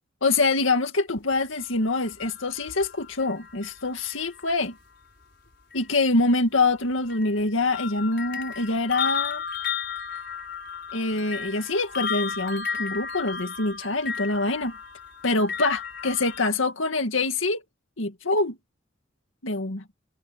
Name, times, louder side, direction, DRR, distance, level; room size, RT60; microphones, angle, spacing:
voice 1, 0.2-4.7 5.7-9.4 10.9-14.7 15.2-17.6 18.0-18.6 19.4-19.8, left 3 dB, 90° left, 2.1 m, -25 dB
sound 1, 1.6-4.7 5.7-5.9 6.6-16.5, left 6 dB, 60° left, 4.9 m, -34 dB
head